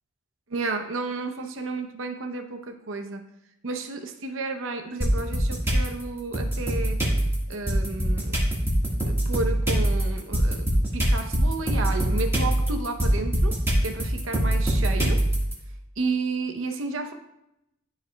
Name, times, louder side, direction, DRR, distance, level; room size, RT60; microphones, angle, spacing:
voice 1, 0.5-3.3 3.6-7.0 7.5-8.4 9.0-13.6 13.8-15.2 16.0-17.1, right 3 dB, 80° right, 5 dB, 0.8 m, -32 dB
sound 1, 5.0-5.9 6.3-15.5, right 1 dB, 10° right, 1.5 m, -24 dB
12.5 x 4.8 x 2.2 m, 0.84 s
head